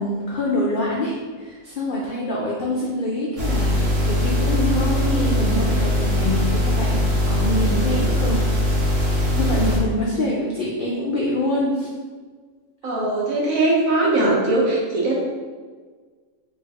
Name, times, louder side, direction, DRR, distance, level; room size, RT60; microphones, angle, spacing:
voice 1, 0.0-8.4 9.3-11.9, left 1 dB, 80° left, -4 dB, 0.4 m, -25 dB
sound 1, 3.4-9.8, equal, 50° right, 1.0 m, -21 dB
voice 2, 12.8-15.2, right 2 dB, 70° right, -4 dB, 1.3 m, -20 dB
3.3 x 2.5 x 3.4 m, 1.5 s
omnidirectional pair, 1.5 m